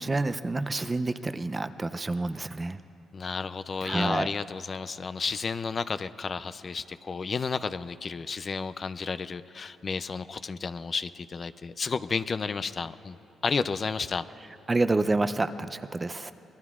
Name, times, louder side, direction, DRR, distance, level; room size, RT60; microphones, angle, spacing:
voice 1, 0.0-2.8 3.8-4.3 14.7-16.3, right 2 dB, 25° right, 10 dB, 0.5 m, -28 dB
voice 2, 3.1-13.2 13.4-14.3, left 5 dB, 40° left, 12 dB, 0.4 m, -32 dB
26.0 x 21.0 x 2.4 m, 3.0 s
cardioid pair, 90°, 0 cm